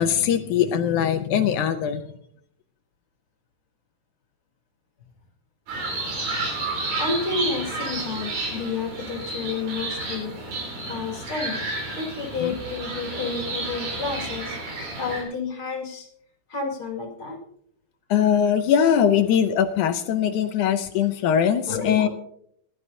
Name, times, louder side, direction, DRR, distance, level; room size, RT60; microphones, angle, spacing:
voice 1, 0.0-2.0 12.4-12.6 18.1-22.1, left 8 dB, 75° left, 8 dB, 1.9 m, -21 dB
sound 1, 5.7-15.2, right 2 dB, 75° right, 5.6 m, -31 dB
voice 2, 7.0-10.4 10.8-11.6 11.9-16.1 16.5-17.4 21.7-22.1, left 4 dB, 40° left, 0 dB, 2.7 m, -30 dB
19.5 x 12.0 x 2.8 m, 0.68 s
omnidirectional pair, 4.1 m